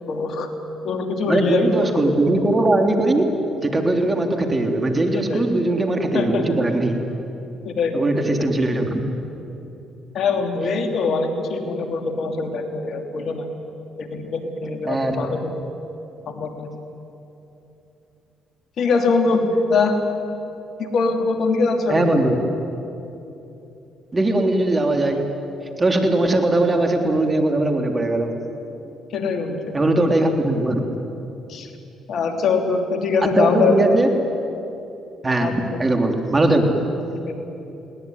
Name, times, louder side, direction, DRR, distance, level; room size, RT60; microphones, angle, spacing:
voice 1, 0.1-0.5 0.8-1.9 5.1-5.4 6.1-6.5 7.6-8.0 8.4-8.5 10.1-13.5 14.0-15.5 16.3-16.7 18.8-20.0 20.8-22.1 29.1-29.6 30.0-30.1 31.5-31.7 32.1-33.9 35.4-35.5 37.1-37.3, left 4 dB, 60° left, 5 dB, 2.9 m, -22 dB
voice 2, 1.3-3.2 3.6-7.0 7.9-9.0 14.8-15.1 21.9-22.3 24.1-25.2 25.8-28.3 29.7-30.8 33.4-34.1 35.2-35.5 35.8-36.7, right 2 dB, 25° right, 4 dB, 3.4 m, -20 dB
21.5 x 18.0 x 9.7 m, 2.9 s
supercardioid pair, 60°, 0 cm